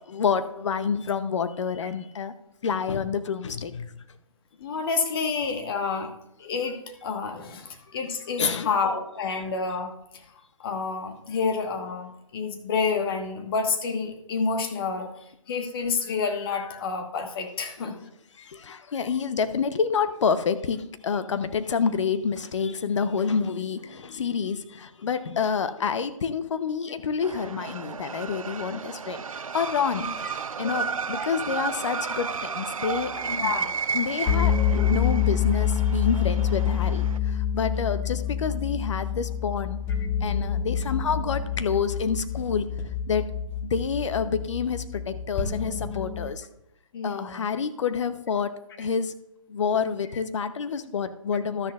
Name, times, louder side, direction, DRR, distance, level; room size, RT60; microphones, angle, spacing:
voice 1, 0.1-2.3 2.6-4.0 8.4-8.7 18.4-30.1 30.3-33.5 33.9-39.8 40.2-42.7 43.1-43.3 43.6-46.4 47.0-48.5 48.8-49.1 49.5-51.7, left 6 dB, 60° left, 11 dB, 0.8 m, -28 dB
voice 2, 4.6-6.1 6.4-9.9 10.6-15.1 15.5-17.9 30.0-30.1 33.2-33.7 46.9-47.4, left 5 dB, 45° left, 4 dB, 1.3 m, -29 dB
sound 1, 27.2-37.2, right 5 dB, 85° right, 0.6 m, -33 dB
sound 2, 34.3-46.3, left 8 dB, 15° left, 1.1 m, -27 dB
12.5 x 10.0 x 2.4 m, 0.82 s
figure-of-eight pair, 145°, 17 cm